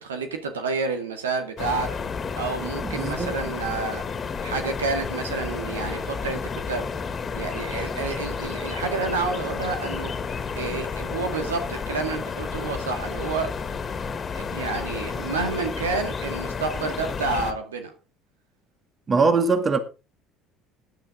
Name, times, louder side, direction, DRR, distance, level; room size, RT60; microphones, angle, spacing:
voice 1, 0.0-2.0 2.4-4.0 4.4-6.9 7.3-10.1 10.6-13.6 14.3-17.9, right 4 dB, 85° right, 2.0 m, -29 dB
sound 1, 1.6-17.5, left 5 dB, 35° left, 2.1 m, -31 dB
voice 2, 2.8-3.3 19.1-19.8, right 4 dB, 35° right, 2.3 m, -21 dB
15.5 x 10.5 x 3.8 m
hypercardioid pair, 60°, 0 cm